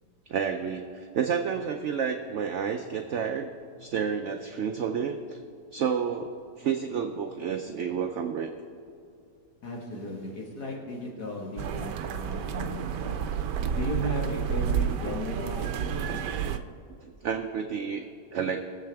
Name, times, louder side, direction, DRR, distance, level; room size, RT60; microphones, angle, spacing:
voice 1, 0.3-3.5 3.8-5.4 5.7-8.5 17.0-18.1 18.3-18.6, right 7 dB, 65° right, 5 dB, 0.7 m, -30 dB
voice 2, 9.6-13.2 13.7-16.2, left 1 dB, 65° left, -2 dB, 2.3 m, -36 dB
sound 1, 11.6-16.6, right 8 dB, 80° right, 1.3 m, -30 dB
22.0 x 7.6 x 3.5 m, 2.5 s
omnidirectional pair, 1.8 m